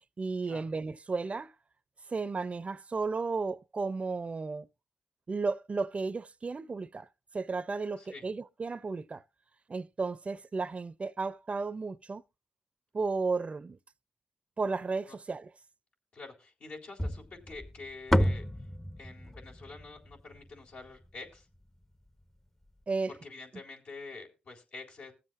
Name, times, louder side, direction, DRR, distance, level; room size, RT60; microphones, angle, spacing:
voice 1, 0.2-1.5 2.1-4.7 5.3-7.1 7.3-9.2 9.7-12.2 12.9-13.8 14.6-15.5 22.9-23.1, right 4 dB, 45° right, 0.6 m, -33 dB
voice 2, 16.1-18.7 19.0-21.5 23.1-25.1, left 3 dB, 80° left, 3.9 m, -47 dB
sound 1, 17.0-21.3, equal, 10° left, 0.7 m, -31 dB
22.5 x 7.5 x 2.6 m
cardioid pair, 55°, 3 cm